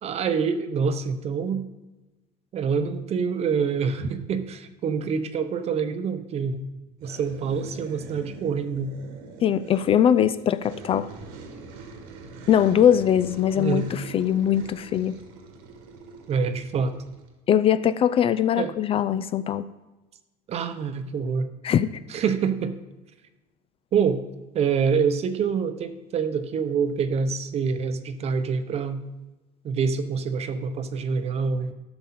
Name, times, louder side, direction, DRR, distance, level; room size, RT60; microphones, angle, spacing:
voice 1, 0.0-1.6 2.5-6.6 7.0-8.9 13.6-13.9 16.3-17.0 18.6-18.7 20.5-21.5 22.1-22.8 23.9-24.2 24.5-29.0 29.6-31.7, right 6 dB, 35° right, 10 dB, 0.8 m, -26 dB
sound 1, 7.0-17.3, right 4 dB, 80° right, 1.6 m, -43 dB
voice 2, 9.4-11.1 12.5-15.2 17.5-19.6 21.6-21.9, left 9 dB, 35° left, 13 dB, 0.4 m, -21 dB
12.0 x 7.0 x 4.3 m, 1.1 s
cardioid pair, 130°, 17 cm